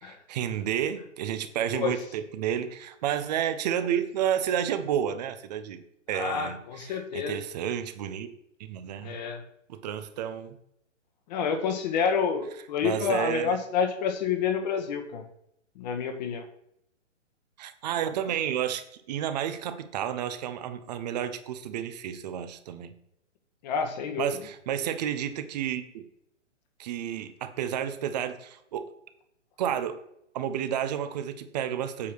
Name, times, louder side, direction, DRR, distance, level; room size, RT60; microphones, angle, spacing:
voice 1, 0.0-5.8 6.1-8.3 8.6-9.2 9.7-10.6 12.8-13.6 17.6-22.9 24.2-26.0 26.8-28.9 29.6-30.0 30.3-32.1, right 9 dB, 35° right, 10 dB, 1.0 m, -31 dB
voice 2, 6.1-7.4 9.0-9.4 11.3-15.2 15.7-16.4 23.6-24.3, left 6 dB, 35° left, 6 dB, 1.6 m, -28 dB
8.7 x 4.7 x 6.2 m, 0.76 s
hypercardioid pair, 135°, 37 cm